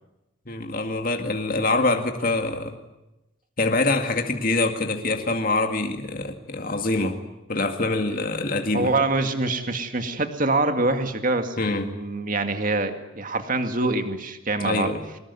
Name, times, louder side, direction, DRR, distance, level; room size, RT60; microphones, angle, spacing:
voice 1, 0.5-2.8 3.6-7.2 7.5-8.9 11.6-11.9 14.6-15.0, left 2 dB, 45° left, 5 dB, 2.1 m, -25 dB
voice 2, 8.7-14.9, right 2 dB, 40° right, 7 dB, 2.2 m, -25 dB
24.0 x 20.5 x 9.5 m, 0.98 s
head